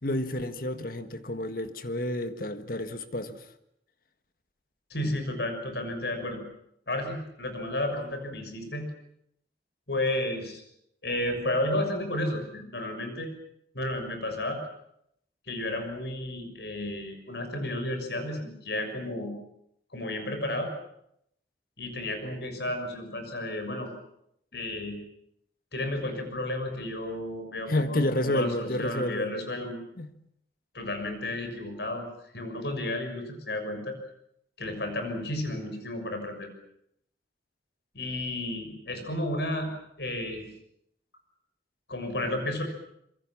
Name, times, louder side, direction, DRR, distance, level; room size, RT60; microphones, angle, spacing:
voice 1, 0.0-3.5 27.7-29.3 30.0-30.1, left 1 dB, 55° left, 9 dB, 1.6 m, -30 dB
voice 2, 4.9-6.4 6.9-8.9 9.9-10.6 11.0-13.3 13.7-14.6 15.5-19.3 19.9-20.7 21.8-23.9 24.5-25.0 25.7-29.8 30.7-33.9 34.6-36.5 37.9-39.7 40.0-40.4 41.9-42.6, left 1 dB, 70° left, 6 dB, 6.5 m, -32 dB
26.5 x 23.5 x 7.4 m, 0.76 s
head